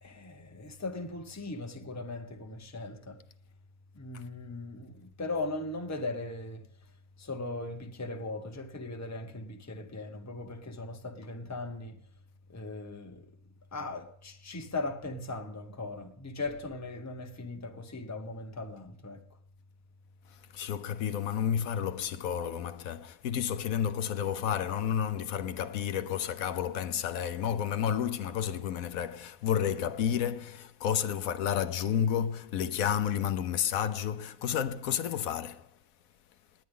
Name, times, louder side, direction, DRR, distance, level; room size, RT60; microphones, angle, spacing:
voice 1, 0.0-3.2 3.9-6.7 7.2-12.0 12.5-13.4 13.7-19.2, left 2 dB, 15° left, 0.9 m, -39 dB
voice 2, 20.3-35.8, left 9 dB, 75° left, 1.1 m, -31 dB
19.5 x 9.5 x 3.7 m
omnidirectional pair, 1.5 m